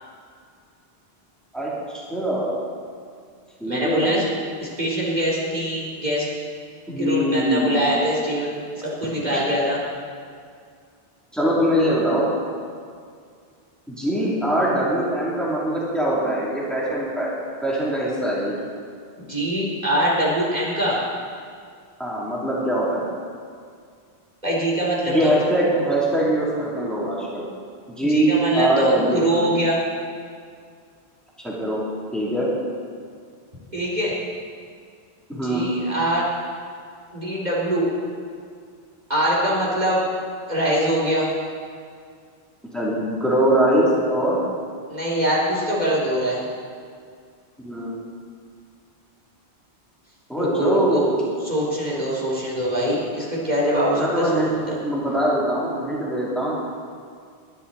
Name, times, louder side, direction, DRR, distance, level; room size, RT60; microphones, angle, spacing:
voice 1, 1.5-2.6 3.6-4.2 6.9-7.8 9.3-9.4 11.3-12.3 13.9-18.6 22.0-23.1 25.1-27.4 27.9-29.5 31.4-31.8 32.1-32.5 35.3-35.7 42.7-44.4 47.6-47.9 50.3-51.2 54.0-56.6, right 1 dB, ahead, -7 dB, 3.1 m, -22 dB
voice 2, 3.7-4.2 4.6-6.3 7.0-9.8 19.2-21.0 24.4-25.3 28.1-29.8 33.7-34.1 35.3-36.3 37.1-37.9 39.1-40.0 40.5-41.3 44.9-46.4 50.4-51.0 51.4-54.8, right 1 dB, 45° right, -5 dB, 3.3 m, -23 dB
21.0 x 11.0 x 4.2 m, 2.2 s
omnidirectional pair, 1.0 m